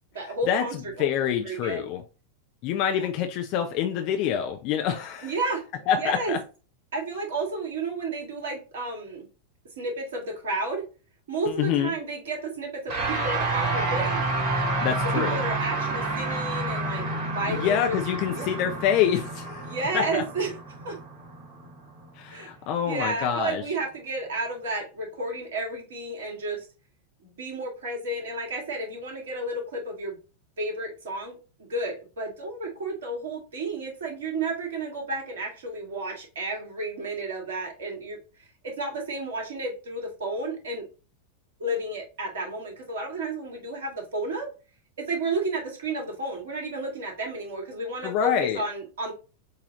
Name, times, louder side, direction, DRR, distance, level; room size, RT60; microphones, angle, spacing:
voice 1, 0.1-1.1 1.4-1.9 3.0-3.1 5.2-5.6 5.9-6.4 6.9-9.3 9.8-10.8 11.3-14.2 15.3-18.0 18.4-18.5 19.6-20.6 20.8-21.0 22.3-22.5 22.8-26.7 27.2-30.2 30.6-38.2 38.6-40.8 41.6-44.5 45.0-49.1, right 2 dB, 60° right, 2.0 m, -32 dB
voice 2, 1.0-2.0 2.6-5.3 5.9-6.4 11.5-11.9 14.8-15.4 17.1-17.2 17.5-20.2 22.2-23.6 48.0-48.6, left 9 dB, 40° left, 0.6 m, -26 dB
sound 1, 12.9-22.4, right 2 dB, 45° right, 2.2 m, -29 dB
6.4 x 2.8 x 3.0 m
figure-of-eight pair, 90°, 0 cm